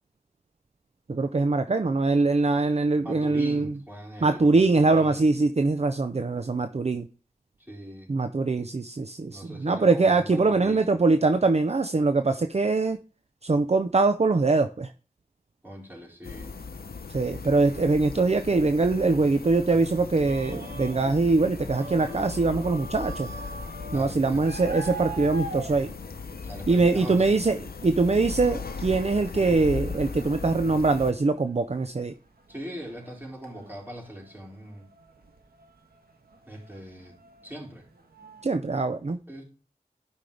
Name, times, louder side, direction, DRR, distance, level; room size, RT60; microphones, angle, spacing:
voice 1, 1.1-3.7 4.2-7.1 8.1-13.0 13.4-14.9 17.1-23.3 23.9-25.9 26.7-27.6 27.8-32.1 38.4-39.2, right 3 dB, 45° right, 9 dB, 0.6 m, -23 dB
voice 2, 3.0-5.3 7.6-8.1 9.3-11.0 15.6-16.6 23.9-24.5 26.4-27.4 32.5-34.9 36.5-37.2 37.4-37.9 39.3-39.4, right 1 dB, 10° right, -3 dB, 4.2 m, -41 dB
sound 1, 16.2-31.1, left 4 dB, 85° left, 0.8 m, -37 dB
sound 2, 20.1-26.9 27.3-27.4 27.8-28.2 28.6-28.7 29.2-38.4, right 2 dB, 85° right, 1.4 m, -43 dB
11.5 x 5.4 x 3.3 m, 0.37 s
wide cardioid pair, 60°, 15 cm